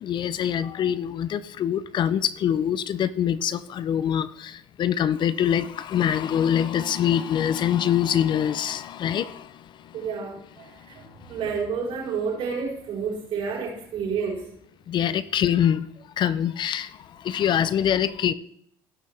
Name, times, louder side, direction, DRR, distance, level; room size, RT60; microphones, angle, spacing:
voice 1, 0.0-10.0 10.6-11.4 14.9-15.9 16.2-18.3, left 9 dB, 45° left, 0.6 m, -25 dB
voice 2, 9.9-14.5, right 5 dB, 60° right, 5.0 m, -30 dB
17.5 x 6.2 x 3.4 m
supercardioid pair, 95°, 11 cm